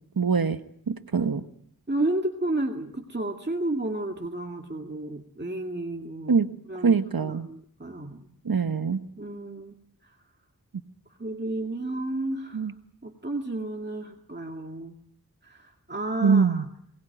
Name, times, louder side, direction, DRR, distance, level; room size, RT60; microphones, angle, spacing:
voice 1, 0.2-0.6 0.9-1.4 6.3-6.5 6.8-7.5 8.4-9.0 12.5-12.7 16.2-16.7, right 5 dB, 75° right, 9 dB, 1.3 m, -23 dB
voice 2, 1.9-6.4 6.7-8.3 9.2-9.8 11.2-12.7 13.0-14.9 15.4-16.6, right 2 dB, 30° right, 3 dB, 2.1 m, -32 dB
22.0 x 19.5 x 9.0 m, 0.67 s
wide cardioid pair, 45°, 36 cm